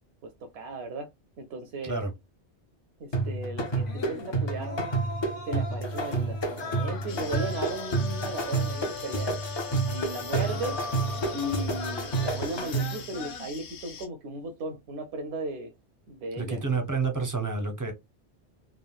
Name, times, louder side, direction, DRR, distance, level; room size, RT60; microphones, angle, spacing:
voice 1, 0.2-1.1 1.4-2.0 3.0-4.8 5.5-9.4 9.9-10.8 11.3-15.7 16.1-16.6, right 2 dB, 75° right, 0.8 m, -36 dB
sound 1, 3.1-13.1, right 2 dB, 40° left, 0.4 m, -30 dB
sound 2, 3.8-13.5, left 3 dB, 55° left, 1.0 m, -40 dB
sound 3, 7.1-14.1, left 6 dB, 80° left, 0.9 m, -44 dB
voice 2, 16.4-17.9, right 4 dB, 25° right, 0.4 m, -29 dB
3.5 x 2.1 x 2.3 m
omnidirectional pair, 1.1 m